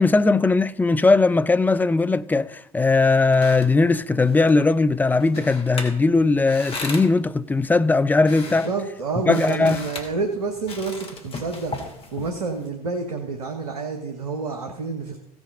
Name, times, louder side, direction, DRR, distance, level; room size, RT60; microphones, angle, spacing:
voice 1, 0.0-8.7 9.3-9.8, left 3 dB, 10° left, 0.4 m, -19 dB
sound 1, 3.0-12.7, left 3 dB, 30° left, 2.5 m, -38 dB
voice 2, 8.6-11.7 12.1-15.2, right 4 dB, 75° right, 1.3 m, -28 dB
16.0 x 6.1 x 4.9 m
figure-of-eight pair, 70°, 19 cm